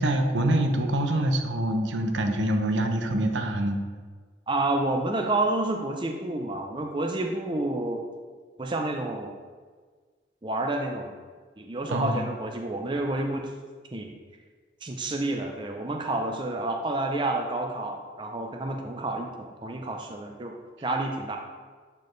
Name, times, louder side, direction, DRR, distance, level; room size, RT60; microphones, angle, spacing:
voice 1, 0.0-3.8 11.9-12.2, right 1 dB, 90° right, 5 dB, 0.7 m, -25 dB
voice 2, 4.5-8.1 8.6-9.4 10.4-11.1 11.6-13.5 13.9-14.1 14.8-20.6 20.8-21.4, right 2 dB, 25° right, 3 dB, 0.5 m, -29 dB
8.2 x 4.4 x 3.2 m, 1.5 s
head